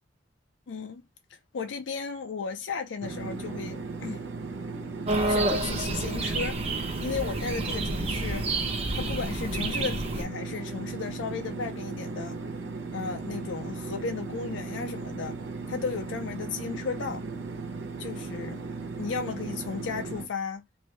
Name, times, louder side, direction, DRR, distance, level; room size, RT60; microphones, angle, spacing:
voice 1, 0.7-1.1 1.3-4.2 5.2-6.7 7.0-8.6 8.9-12.4 12.9-15.4 15.7-17.3 18.0-18.6 19.0-20.6, left 5 dB, 75° left, 0.4 m, -35 dB
sound 1, 3.0-20.3, right 3 dB, 85° right, 0.8 m, -37 dB
sound 2, 5.1-10.2, right 2 dB, 35° right, 0.7 m, -29 dB
3.0 x 2.6 x 3.1 m
head